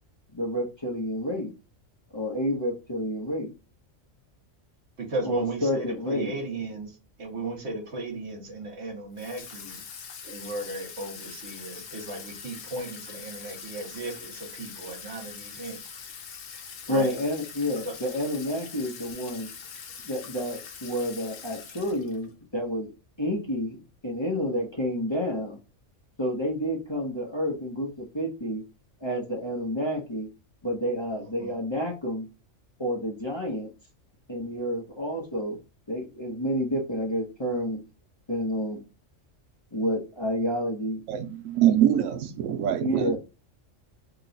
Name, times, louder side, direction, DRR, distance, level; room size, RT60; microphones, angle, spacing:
voice 1, 0.3-1.5 2.1-3.5 5.2-6.3 16.9-19.5 20.0-22.9 23.2-25.6 26.2-28.6 29.0-30.3 30.6-32.3 32.8-33.7 34.3-35.6 35.9-37.8 38.3-38.8 39.7-41.0 42.8-43.2, equal, 25° left, 0.8 m, -29 dB
voice 2, 5.0-6.9 7.2-9.8 10.2-15.8 16.9-17.2 17.8-17.9 31.4-31.6, right 2 dB, 60° right, 1.3 m, -35 dB
Water tap faucet / Sink (filling or washing), 9.2-22.3, left 6 dB, 75° left, 1.0 m, -43 dB
voice 3, 41.1-43.2, right 10 dB, 90° right, 1.0 m, -24 dB
2.9 x 2.3 x 3.8 m
omnidirectional pair, 1.3 m